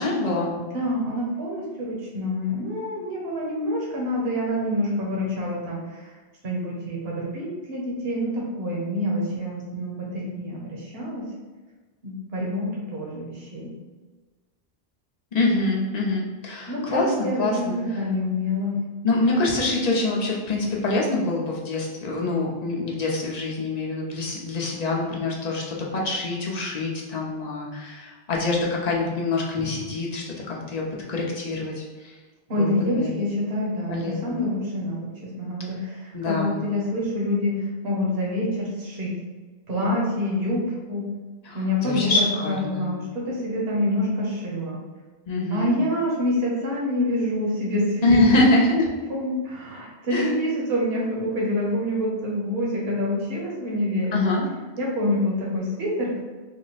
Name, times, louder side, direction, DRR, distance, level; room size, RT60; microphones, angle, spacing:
voice 1, 0.0-0.6 15.3-17.8 19.0-32.2 32.5-33.2 33.9-34.4 36.1-36.6 41.4-42.9 45.3-45.8 48.0-48.9 50.1-50.4 54.1-54.5, left 2 dB, 45° left, -2 dB, 0.7 m, -25 dB
voice 2, 0.5-6.1 6.4-11.3 12.0-13.7 16.7-18.8 29.5-29.8 32.5-39.1 39.7-41.1 41.5-44.8 45.5-48.4 49.1-54.2 54.8-56.2, left 1 dB, 65° right, -4 dB, 1.1 m, -27 dB
3.7 x 2.1 x 4.0 m, 1.3 s
omnidirectional pair, 1.1 m